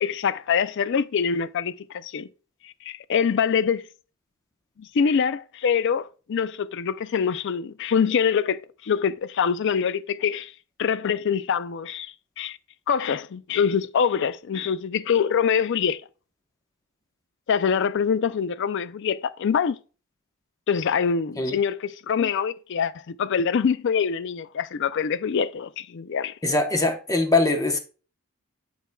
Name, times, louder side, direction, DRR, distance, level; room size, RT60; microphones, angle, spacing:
voice 1, 0.0-2.3 2.6-3.9 4.8-10.5 10.8-12.6 12.9-16.0 17.5-19.8 20.7-26.3, left 6 dB, 55° left, 0.4 m, -24 dB
voice 2, 26.4-27.8, left 2 dB, 15° left, 0.9 m, -22 dB
11.0 x 4.6 x 2.3 m
head